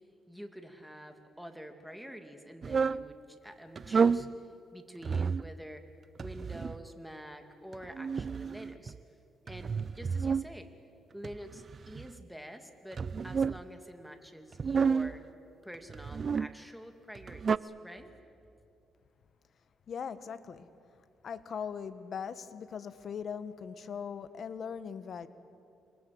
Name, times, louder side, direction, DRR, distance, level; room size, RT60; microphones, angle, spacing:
voice 1, 0.3-4.4 4.7-5.8 6.2-8.9 9.4-10.7 11.1-15.2 15.6-18.1, equal, ahead, 6 dB, 2.5 m, -47 dB
sound 1, 2.6-3.0 3.8-4.3 5.0-5.5 6.2-6.9 7.7-9.0 9.5-10.5 11.2-12.2 12.9-13.6 14.5-15.2 15.9-16.5 17.2-17.6, right 5 dB, 40° right, 0.5 m, -30 dB
voice 2, 19.9-20.7 21.2-25.3, left 7 dB, 55° left, 12 dB, 1.3 m, -40 dB
28.0 x 22.5 x 7.8 m, 2.6 s
cardioid pair, 90°, 0 cm